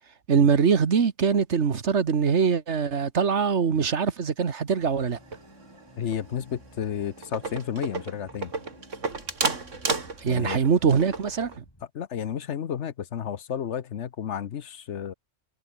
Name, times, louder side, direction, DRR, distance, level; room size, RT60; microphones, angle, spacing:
voice 1, 0.3-5.2 10.2-11.6, right 6 dB, 70° right, 1.7 m, -23 dB
sound 1, 4.7-11.8, equal, 20° left, 7.0 m, -53 dB
sound 2, 5.1-5.8 6.1-6.4 6.8-6.9 7.2-11.6, right 4 dB, 90° right, 3.1 m, -32 dB
voice 2, 6.0-8.5 10.3-10.6 11.9-15.1, left 8 dB, 70° left, 1.2 m, -32 dB
omnidirectional pair, 1.2 m